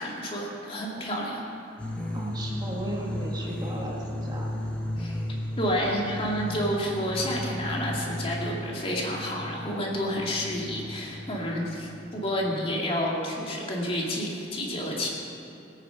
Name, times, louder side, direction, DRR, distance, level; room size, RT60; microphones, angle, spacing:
voice 1, 0.0-1.4 5.0-5.2 5.6-15.1, equal, 30° left, -2 dB, 2.2 m, -30 dB
sound 1, 1.8-12.7, left 1 dB, 5° left, 1.5 m, -35 dB
voice 2, 2.1-4.5, right 1 dB, 25° right, -2 dB, 1.6 m, -35 dB
18.5 x 8.9 x 5.8 m, 2.9 s
head